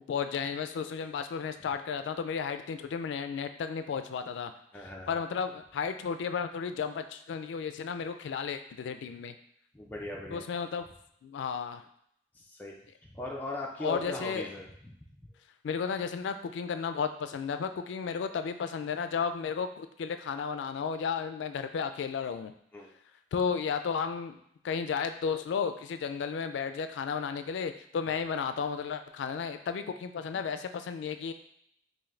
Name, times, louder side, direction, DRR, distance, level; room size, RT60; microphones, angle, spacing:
voice 1, 0.1-9.3 10.3-10.9 11.2-11.8 13.8-14.5 15.6-22.5 23.3-24.4 24.6-31.3, left 6 dB, 85° left, 9 dB, 0.3 m, -33 dB
voice 2, 4.7-5.2 9.7-10.4 12.3-12.7 13.0-14.9 22.7-22.9, left 1 dB, 10° left, -3 dB, 0.4 m, -39 dB
3.7 x 2.6 x 3.2 m, 0.71 s
head